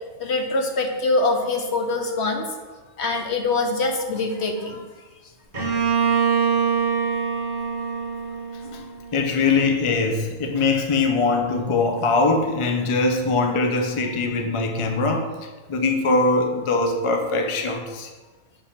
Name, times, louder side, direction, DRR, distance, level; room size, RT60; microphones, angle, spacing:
voice 1, 0.2-2.5 3.0-4.8, left 3 dB, 55° left, 4 dB, 0.9 m, -24 dB
Bowed string instrument, 5.5-9.3, right 6 dB, 35° right, 1.5 m, -24 dB
voice 2, 9.1-15.3 15.7-18.1, left 3 dB, 40° left, 3 dB, 0.5 m, -22 dB
6.7 x 3.8 x 5.7 m, 1.3 s
omnidirectional pair, 1.5 m